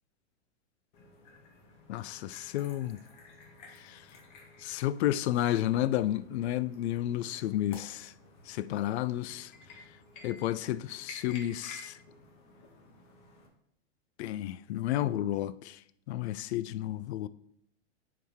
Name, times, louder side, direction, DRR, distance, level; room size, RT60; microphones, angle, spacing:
sound 1, 0.9-13.5, left 3 dB, 45° left, 1.5 m, -53 dB
voice 1, 1.9-3.0 3.7-4.0 4.6-8.1 8.5-9.5 10.2-12.0 14.2-15.8 16.1-17.3, left 13 dB, 65° left, 0.5 m, -31 dB
9.8 x 4.7 x 3.5 m
supercardioid pair, 150°, 35 cm